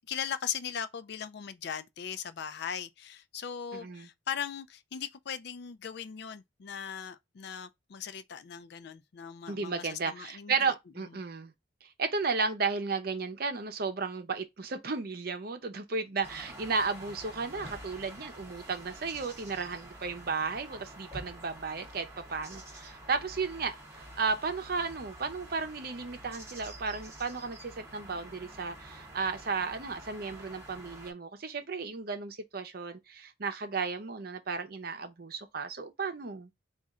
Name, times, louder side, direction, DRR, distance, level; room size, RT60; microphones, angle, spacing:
voice 1, 0.1-10.7 11.0-11.1, left 8 dB, 60° left, 0.4 m, -39 dB
voice 2, 3.7-4.1 9.5-11.5 11.8-36.5, right 4 dB, 55° right, 0.7 m, -34 dB
sound 1, 16.2-31.1, right 1 dB, 15° right, 1.1 m, -48 dB
4.2 x 2.5 x 3.6 m
head